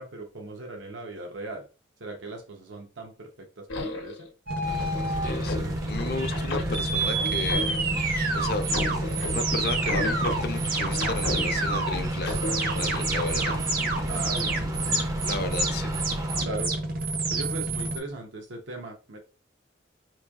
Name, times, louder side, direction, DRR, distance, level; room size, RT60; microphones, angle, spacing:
voice 1, 0.0-1.6 2.0-4.3 6.1-6.2 14.1-14.7 15.3-15.5 16.4-16.7 17.3-19.2, right 2 dB, 85° right, 0.7 m, -38 dB
sound 1, 3.7-4.3 4.8-8.0 8.5-11.9 12.3-14.1 14.5-14.7, left 2 dB, 85° left, 0.8 m, -34 dB
sound 2, 4.5-18.0, right 2 dB, 50° right, 0.7 m, -28 dB
sound 3, 4.6-16.4, right 1 dB, 20° right, 0.4 m, -36 dB
voice 2, 5.1-7.8 8.3-8.7 9.1-12.4 12.7-14.3 15.3-15.9, left 3 dB, 55° left, 0.5 m, -34 dB
5.1 x 3.1 x 2.3 m
head